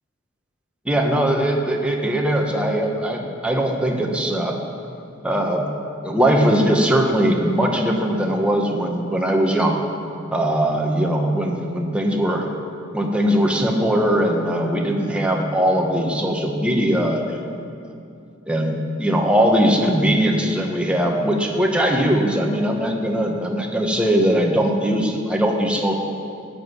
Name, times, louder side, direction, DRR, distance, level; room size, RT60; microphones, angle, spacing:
voice 1, 0.8-4.5 5.2-5.7 6.0-9.8 10.3-12.5 12.9-17.4 18.5-26.0, equal, 5° right, 0 dB, 1.5 m, -20 dB
14.5 x 7.6 x 9.8 m, 2.5 s
head